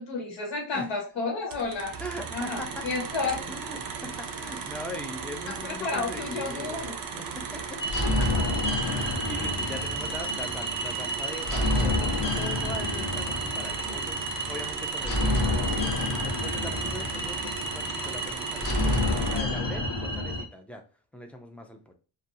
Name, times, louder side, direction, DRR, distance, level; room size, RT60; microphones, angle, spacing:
voice 1, 0.0-2.0 2.3-3.4 5.5-6.9 8.2-8.3, left 3 dB, 75° left, 0 dB, 1.2 m, -31 dB
sound 1, 1.5-19.4, right 6 dB, 50° right, 0.5 m, -37 dB
voice 2, 2.0-2.8 3.5-6.8 7.1-7.8 8.9-20.8 21.1-21.9, equal, 5° left, 3 dB, 0.3 m, -41 dB
sound 2, 7.8-20.4, left 1 dB, 45° left, 0.7 m, -28 dB
2.6 x 2.3 x 2.5 m, 0.37 s
wide cardioid pair, 120°, 45 cm